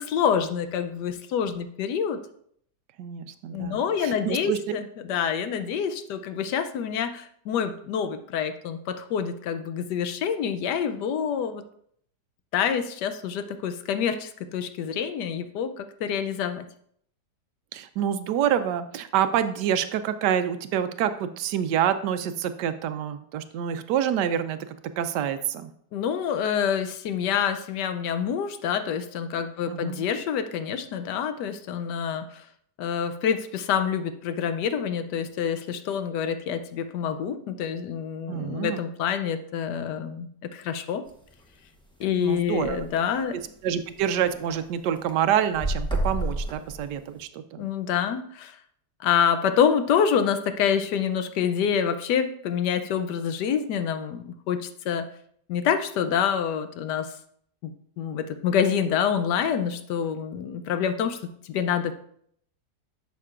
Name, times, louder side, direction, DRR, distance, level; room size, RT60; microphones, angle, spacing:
voice 1, 0.0-2.2 3.5-11.6 12.5-16.6 25.9-32.4 32.8-41.0 42.0-43.4 47.6-48.6 49.0-55.1 55.5-57.1 57.6-57.7 58.0-61.2 61.4-61.9, left 7 dB, 80° left, 10 dB, 1.2 m, -27 dB
voice 2, 3.0-4.6 17.7-25.7 29.7-30.0 38.3-38.8 42.2-42.9 43.6-47.6, right 9 dB, 80° right, 11 dB, 1.2 m, -27 dB
sound 1, 41.1-41.3 41.8-41.9 42.1-42.2 42.4-42.8 43.4-43.5 43.9-44.6 44.9-47.2, right 1 dB, 5° left, 0.4 m, -30 dB
11.0 x 6.8 x 2.4 m, 0.66 s
omnidirectional pair, 1.8 m